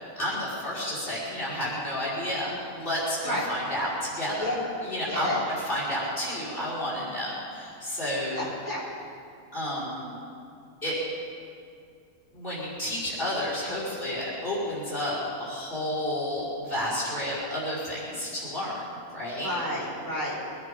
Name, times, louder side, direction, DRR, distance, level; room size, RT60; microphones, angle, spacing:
voice 1, 0.2-4.4 4.8-5.4 5.7-8.5 9.5-10.1 10.8-11.0 12.3-18.8 19.1-19.5, left 1 dB, 35° left, -7 dB, 5.5 m, -31 dB
voice 2, 5.1-5.4 8.3-8.8 19.4-20.4, left 1 dB, 70° left, -9 dB, 4.9 m, -30 dB
23.0 x 10.5 x 5.4 m, 2.4 s
omnidirectional pair, 1.6 m